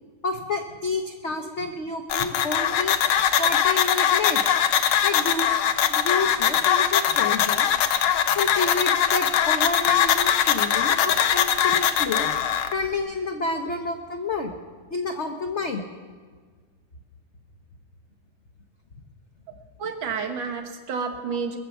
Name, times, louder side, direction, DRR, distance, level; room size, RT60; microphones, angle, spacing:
voice 1, 0.2-2.9 3.4-4.6 5.0-5.6 5.9-7.7 8.3-12.3 12.7-14.5 14.9-15.8, left 3 dB, 50° left, 4 dB, 0.8 m, -29 dB
sound 1, 2.1-12.7, left 9 dB, 85° left, 1.7 m, -21 dB
voice 2, 19.8-21.6, right 5 dB, 70° right, 5 dB, 2.0 m, -30 dB
21.5 x 7.4 x 7.0 m, 1.5 s
omnidirectional pair, 2.3 m